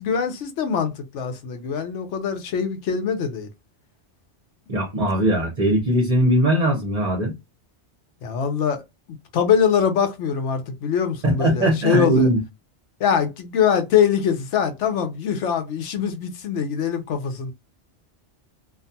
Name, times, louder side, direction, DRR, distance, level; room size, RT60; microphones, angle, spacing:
voice 1, 0.0-3.5 8.2-8.8 9.3-12.3 13.0-17.5, left 7 dB, 85° left, 1.0 m, -23 dB
voice 2, 4.7-7.3 11.2-12.4, right 1 dB, 40° right, 0.8 m, -20 dB
2.5 x 2.3 x 2.7 m
omnidirectional pair, 1.2 m